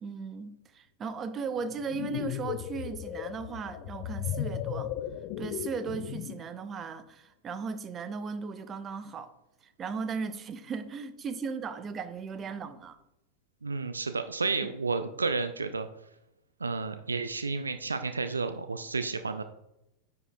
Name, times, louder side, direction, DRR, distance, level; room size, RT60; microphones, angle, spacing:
voice 1, 0.0-4.9 5.4-9.3 9.6-13.0, right 5 dB, 25° right, 11 dB, 0.5 m, -37 dB
sound 1, 1.7-6.5, left 11 dB, 45° left, 0.4 m, -36 dB
voice 2, 13.6-15.9 16.6-19.4, right 4 dB, 75° right, 9 dB, 0.3 m, -31 dB
9.7 x 4.7 x 2.2 m, 0.87 s
figure-of-eight pair, 90°, 0 cm